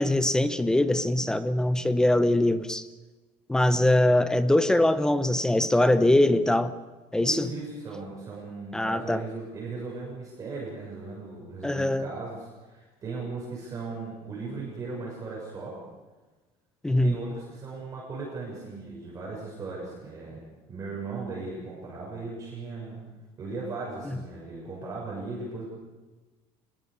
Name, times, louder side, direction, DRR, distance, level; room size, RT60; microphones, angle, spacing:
voice 1, 0.0-2.8 3.5-6.7 7.1-7.5 8.7-9.2 11.6-12.1 16.8-17.1, left 1 dB, 5° left, 12 dB, 0.7 m, -22 dB
voice 2, 7.2-15.8 16.9-20.4 20.7-23.0 23.4-25.7, right 3 dB, 25° right, -4 dB, 6.6 m, -37 dB
25.5 x 21.0 x 6.7 m, 1.2 s
cardioid pair, 170°, 12 cm